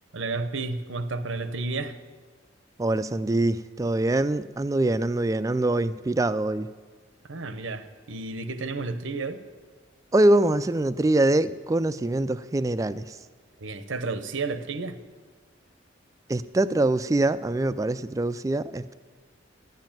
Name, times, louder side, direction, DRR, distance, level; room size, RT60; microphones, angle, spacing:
voice 1, 0.1-2.0 7.2-9.4 13.6-15.0, right 3 dB, 85° right, 11 dB, 0.9 m, -31 dB
voice 2, 2.8-6.7 10.1-13.0 16.3-18.9, right 2 dB, 15° right, 14 dB, 0.3 m, -24 dB
12.5 x 7.7 x 8.9 m, 1.5 s
head